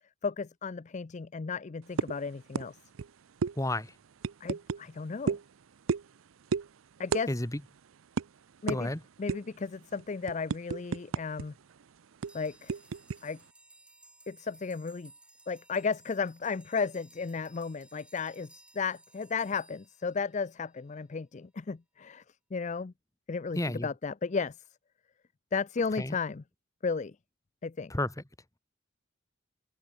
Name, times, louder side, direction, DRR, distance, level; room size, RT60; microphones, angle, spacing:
voice 1, 0.2-2.8 4.4-5.4 7.0-7.3 8.6-8.9 9.2-11.5 12.3-12.7 13.2-13.4 14.3-15.1 15.5-22.2 22.5-22.9 23.3-24.6 25.5-26.4 26.8-27.1 27.6-27.9, left 5 dB, 35° left, 0.4 m, -34 dB
sound 1, 2.0-2.2 2.6-2.7 2.9-3.1 3.4-3.5 4.2-4.8 5.3-5.5 5.9-6.2 6.5-6.7 7.1-7.3 7.5-7.7 8.2-8.3 8.7-8.8 9.3-9.6 10.0-11.4 11.7-11.8 12.2-13.2, right 5 dB, 80° right, 0.5 m, -31 dB
voice 2, 3.6-3.9 7.3-7.6 8.7-9.0 23.5-23.9 26.0-26.1 27.9-28.1, left 1 dB, 15° left, 1.5 m, -31 dB
sound 2, 12.2-20.7, right 2 dB, 5° right, 6.3 m, -59 dB
head